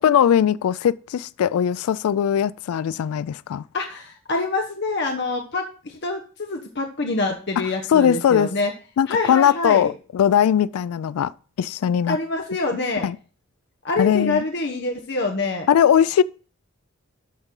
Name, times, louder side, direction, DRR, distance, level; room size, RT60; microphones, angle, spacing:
voice 1, 0.0-3.6 7.9-8.5 9.0-11.3 11.6-12.2 13.0-13.2 14.0-14.4 15.7-16.2, left 9 dB, 85° left, 0.3 m, -19 dB
voice 2, 3.7-8.7 9.1-9.9 12.1-13.1 13.8-15.7, left 3 dB, 50° left, 1.0 m, -26 dB
12.0 x 6.0 x 3.8 m
head